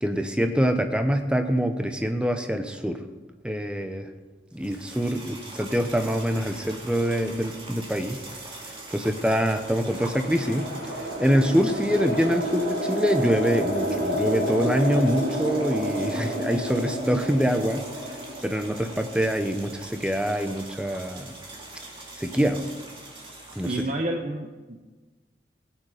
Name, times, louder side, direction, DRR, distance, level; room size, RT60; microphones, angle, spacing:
voice 1, 0.0-3.0 3.4-4.1 4.5-8.2 8.9-10.7 11.2-17.9 18.4-21.3 22.2-22.6 23.5-23.7, equal, 5° right, 6 dB, 0.7 m, -25 dB
sound 1, 4.5-23.8, right 2 dB, 30° right, 2.4 m, -43 dB
sound 2, 9.2-19.6, equal, 85° right, 5.0 m, -30 dB
voice 2, 23.6-24.8, right 1 dB, 45° right, 3 dB, 0.9 m, -29 dB
17.5 x 9.0 x 5.0 m, 1.3 s
head